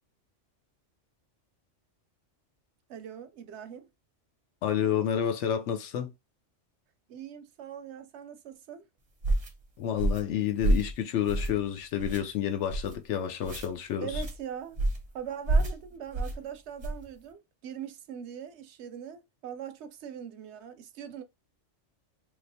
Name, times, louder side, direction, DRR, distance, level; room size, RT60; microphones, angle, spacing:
voice 1, 2.9-3.9 7.1-8.9 14.0-14.8 15.1-21.2, right 8 dB, 70° right, 0.8 m, -41 dB
voice 2, 4.6-6.1 9.8-14.2, left 10 dB, 75° left, 0.9 m, -29 dB
sound 1, 9.2-9.5 10.0-10.3 10.6-10.9 11.3-11.6 12.0-12.2 12.7-13.0 13.4-13.7 14.1-14.4 14.8-15.1 15.5-15.8 16.1-16.4 16.8-17.0, right 2 dB, 35° right, 0.7 m, -28 dB
3.2 x 2.9 x 2.6 m
omnidirectional pair, 1.3 m